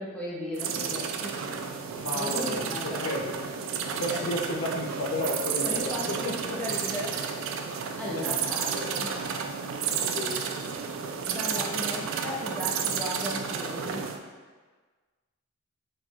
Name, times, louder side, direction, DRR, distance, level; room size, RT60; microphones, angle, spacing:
voice 1, 0.0-1.4 2.1-3.1 4.1-4.3 5.6-9.1 11.3-14.1, left 1 dB, 5° left, -6 dB, 0.6 m, -36 dB
sound 1, 0.5-14.2, right 6 dB, 65° right, 0.3 m, -32 dB
voice 2, 2.0-3.2 4.0-6.0 8.7-8.9 10.1-10.3, left 1 dB, 60° left, -1 dB, 0.6 m, -32 dB
6.2 x 2.3 x 2.3 m, 1.4 s
head